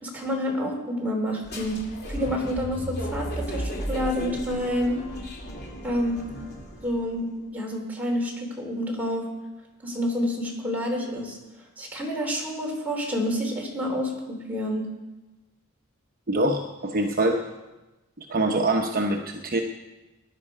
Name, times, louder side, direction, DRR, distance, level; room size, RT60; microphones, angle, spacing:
voice 1, 0.0-1.8 2.1-5.0 5.8-6.2 6.8-9.3 9.8-11.4 11.8-14.9, equal, 10° right, -2 dB, 3.5 m, -28 dB
sound 1, 1.4-7.0, equal, 50° left, 2.7 m, -34 dB
voice 2, 16.3-17.4 18.2-19.6, right 2 dB, 45° right, 2 dB, 1.0 m, -24 dB
19.0 x 11.0 x 4.9 m, 1.1 s
head